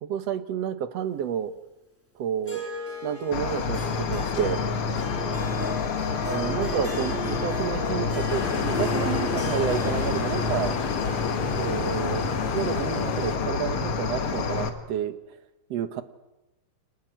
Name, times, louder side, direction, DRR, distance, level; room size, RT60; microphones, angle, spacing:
voice 1, 0.0-1.5 2.2-2.6 3.0-4.6 6.3-10.8 11.6-12.3 12.5-15.2 15.7-16.0, right 9 dB, 60° right, 11 dB, 2.0 m, -30 dB
Harp, 2.5-13.0, equal, 5° right, 3.6 m, -37 dB
Cricket, 3.3-14.7, left 5 dB, 50° left, 2.3 m, -28 dB
sound 1, 8.3-13.4, left 5 dB, 80° left, 4.0 m, -33 dB
24.0 x 19.5 x 9.1 m, 1.0 s
omnidirectional pair, 3.6 m